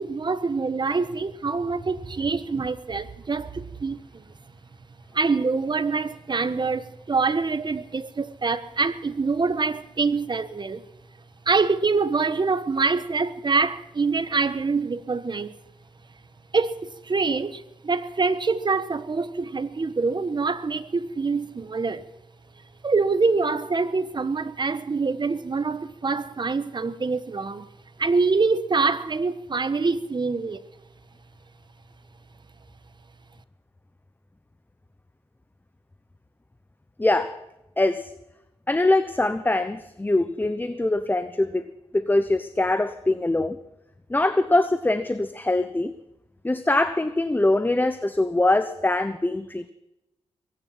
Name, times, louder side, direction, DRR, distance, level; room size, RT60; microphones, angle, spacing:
voice 1, 0.0-4.0 5.1-10.8 11.5-15.5 16.5-22.0 22.8-27.7 28.0-30.6, right 4 dB, 45° right, 1.3 m, -25 dB
voice 2, 37.0-37.4 37.8-38.1 38.7-41.7 41.9-43.6 44.1-45.9 46.4-49.7, left 2 dB, 15° left, 1.0 m, -23 dB
22.0 x 10.5 x 5.8 m
cardioid pair, 65°, 11 cm